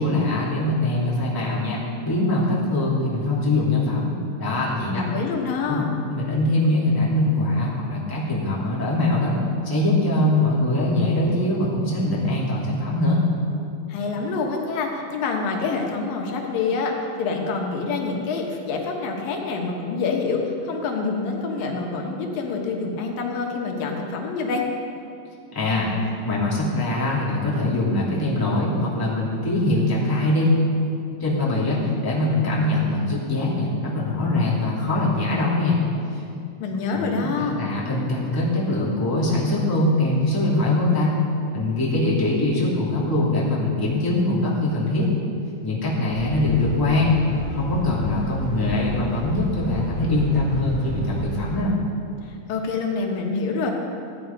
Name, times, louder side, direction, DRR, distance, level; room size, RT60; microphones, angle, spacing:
voice 1, 0.0-5.1 5.7-5.8 6.1-9.4 9.6-13.2 25.5-25.9 26.2-30.6 31.2-35.8 36.1-36.2 36.9-41.2 41.5-45.1 45.6-47.2 47.5-51.7, left 2 dB, 5° left, -7 dB, 2.1 m, -22 dB
voice 2, 5.0-5.9 13.9-24.6 36.6-37.6 52.3-53.7, left 4 dB, 85° left, 1 dB, 3.0 m, -26 dB
sound 1, 46.1-51.6, left 1 dB, 30° left, 3.9 m, -30 dB
15.0 x 9.8 x 5.2 m, 2.5 s
omnidirectional pair, 3.9 m